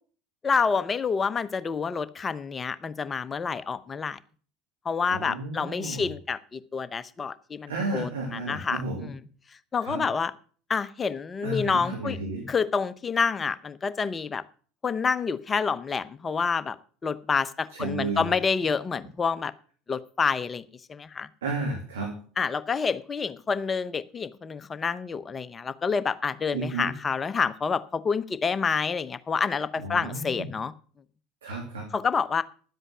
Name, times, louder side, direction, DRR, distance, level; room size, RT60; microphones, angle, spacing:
voice 1, 0.4-4.2 4.8-8.8 9.7-10.3 10.7-12.2 12.5-14.4 14.8-16.8 17.0-19.5 19.9-20.6 20.9-21.3 22.4-30.7 31.9-32.4, left 5 dB, 25° left, 0.8 m, -28 dB
voice 2, 5.1-6.1 7.7-9.1 9.8-10.0 11.4-12.5 17.7-18.3 21.4-22.1 26.5-26.9 29.8-30.5 31.4-31.9, right 2 dB, 80° right, 2.6 m, -32 dB
11.0 x 7.9 x 6.1 m
hypercardioid pair, 75°, 0 cm